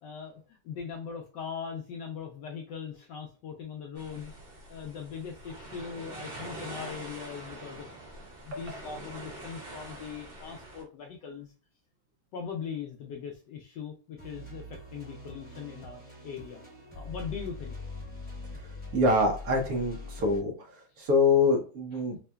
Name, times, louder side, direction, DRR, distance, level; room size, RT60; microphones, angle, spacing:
voice 1, 0.0-4.4 4.7-7.9 8.4-11.5 12.3-16.6 16.9-17.7 21.9-22.0, left 6 dB, 80° left, 1 dB, 1.0 m, -40 dB
sound 1, 4.0-10.8, right 2 dB, 65° right, 2.4 m, -44 dB
sound 2, 14.2-20.4, left 2 dB, 10° right, 0.5 m, -43 dB
voice 2, 18.9-22.2, left 3 dB, 85° right, 1 dB, 0.8 m, -25 dB
5.5 x 2.2 x 2.2 m, 0.38 s
omnidirectional pair, 2.4 m